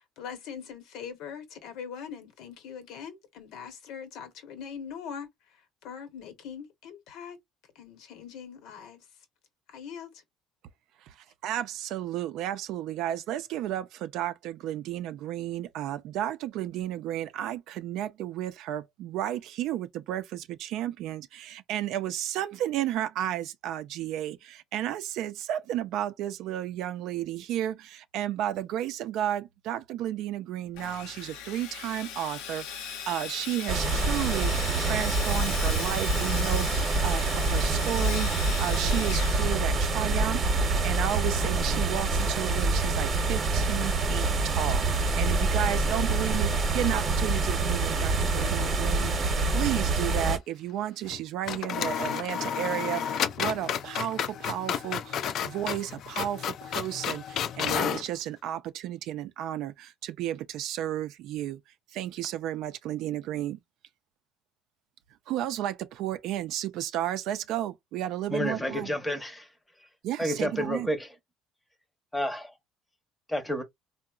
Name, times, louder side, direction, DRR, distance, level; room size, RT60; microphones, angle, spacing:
voice 1, 0.0-7.4 7.7-9.1 9.7-10.2, left 7 dB, 70° left, 0.9 m, -42 dB
voice 2, 11.4-61.6 61.9-63.6 65.3-68.9 70.0-70.9, right 12 dB, 65° right, 0.4 m, -33 dB
Sawing, 30.7-40.2, left 8 dB, 90° left, 0.6 m, -38 dB
sound 1, 33.7-50.4, right 3 dB, 30° right, 0.8 m, -26 dB
sound 2, 48.4-49.2 49.4-49.5 51.0-51.2 51.5-58.1, left 8 dB, 50° left, 0.3 m, -32 dB
voice 3, 68.3-69.3 70.2-71.1 72.1-72.5 73.3-73.6, equal, 5° left, 0.7 m, -29 dB
3.7 x 2.0 x 2.3 m
cardioid pair, 145°, 0 cm